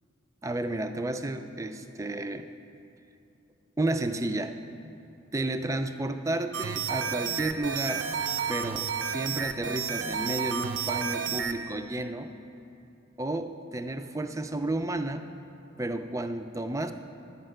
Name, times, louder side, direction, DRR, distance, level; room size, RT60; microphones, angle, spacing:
voice 1, 0.4-2.5 3.8-4.5 5.3-8.1 8.5-12.3 13.2-15.3 15.8-16.9, right 2 dB, 15° right, 8 dB, 0.3 m, -32 dB
sound 1, 6.5-11.6, right 7 dB, 60° right, 0.6 m, -31 dB
11.0 x 5.5 x 7.7 m, 2.8 s
head